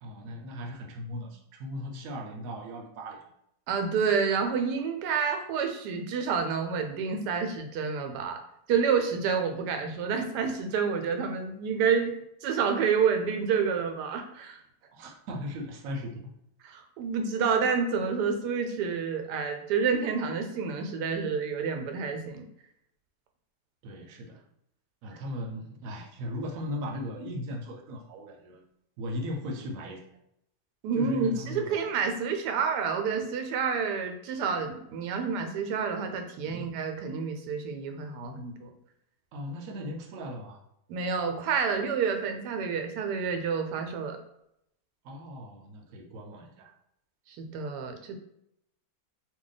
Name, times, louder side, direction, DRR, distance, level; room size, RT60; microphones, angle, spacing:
voice 1, 0.0-3.3 14.9-16.3 23.8-24.4 25.0-28.6 29.0-30.0 30.9-31.9 36.4-36.7 39.3-40.6 45.0-46.7, left 1 dB, 70° right, 2 dB, 1.0 m, -38 dB
voice 2, 3.7-8.4 8.7-12.1 12.4-14.6 16.6-22.5 30.8-38.7 40.9-44.2 47.3-48.2, right 6 dB, 90° right, 5 dB, 1.2 m, -29 dB
2.8 x 2.2 x 3.9 m, 0.77 s
omnidirectional pair, 1.7 m